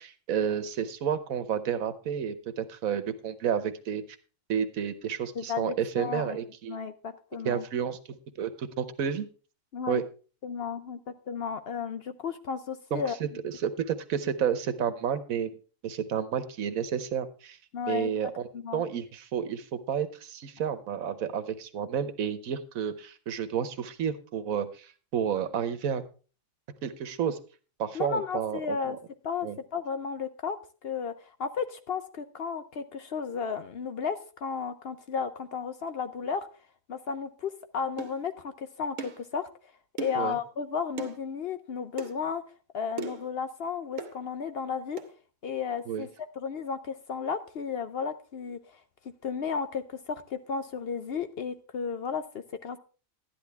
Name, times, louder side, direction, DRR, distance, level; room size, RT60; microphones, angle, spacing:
voice 1, 0.0-4.0 4.5-6.8 7.4-9.3 9.9-10.0 12.9-15.5 15.8-17.6 17.9-26.0 26.8-27.4 27.8-29.0 29.4-29.6 40.1-40.4 45.9-46.1, right 8 dB, 85° right, 12 dB, 1.3 m, -31 dB
voice 2, 5.3-6.4 6.7-7.6 9.7-10.0 10.4-13.4 17.7-18.1 18.5-18.8 27.9-29.0 29.2-30.6 30.8-36.5 36.9-39.5 40.0-42.4 42.7-45.0 45.4-46.1 46.4-48.8 49.2-52.8, left 6 dB, 60° left, 10 dB, 0.7 m, -33 dB
sound 1, 38.0-38.2 39.0-39.2 40.0-40.3 41.0-41.2 42.0-42.1 43.0-43.3 44.0-44.2 45.0-45.1, right 4 dB, 65° right, 1.4 m, -37 dB
12.0 x 10.5 x 3.4 m, 0.36 s
omnidirectional pair, 1.4 m